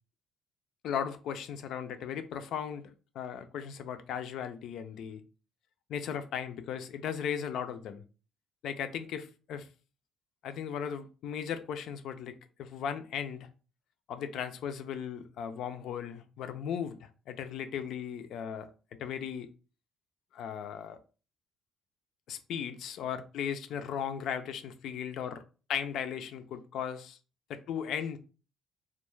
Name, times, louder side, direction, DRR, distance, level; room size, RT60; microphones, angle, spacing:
voice 1, 0.8-5.2 5.9-8.0 8.6-9.7 10.4-13.5 14.1-18.7 19.0-19.5 20.3-21.0 22.3-25.4 25.7-27.2 27.5-28.2, left 8 dB, 70° left, 0.3 m, -37 dB
2.2 x 2.0 x 3.0 m
cardioid pair, 95°, 0 cm